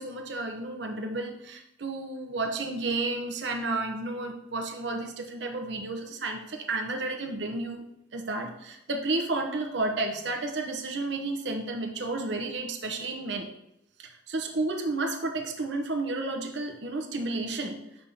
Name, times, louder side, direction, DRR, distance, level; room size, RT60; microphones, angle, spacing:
voice 1, 0.0-7.8 8.1-13.5 14.0-17.8, right 2 dB, 70° right, 3 dB, 0.8 m, -32 dB
5.5 x 3.5 x 5.5 m, 0.83 s
head